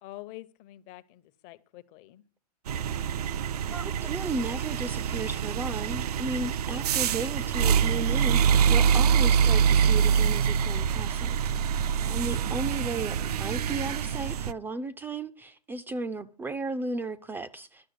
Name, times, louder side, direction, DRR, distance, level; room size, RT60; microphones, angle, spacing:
voice 1, 0.0-2.2 12.3-12.8, left 17 dB, 40° left, 0.9 m, -47 dB
sound 1, 2.7-14.5, right 7 dB, 75° right, 0.6 m, -25 dB
voice 2, 3.7-11.8 12.1-17.9, right 2 dB, 10° right, 0.4 m, -35 dB
11.5 x 6.2 x 7.9 m
hypercardioid pair, 120°, 20 cm